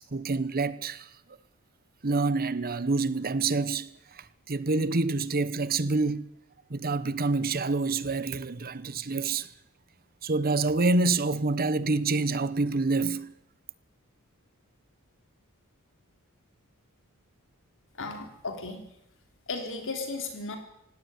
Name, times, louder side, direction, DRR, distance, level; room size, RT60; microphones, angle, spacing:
voice 1, 0.1-1.1 2.0-6.2 6.7-9.5 10.2-13.3, right 3 dB, 45° right, 1.0 m, -27 dB
voice 2, 18.0-18.8 19.5-20.6, left 3 dB, 60° left, 4.2 m, -35 dB
18.0 x 17.0 x 9.4 m
head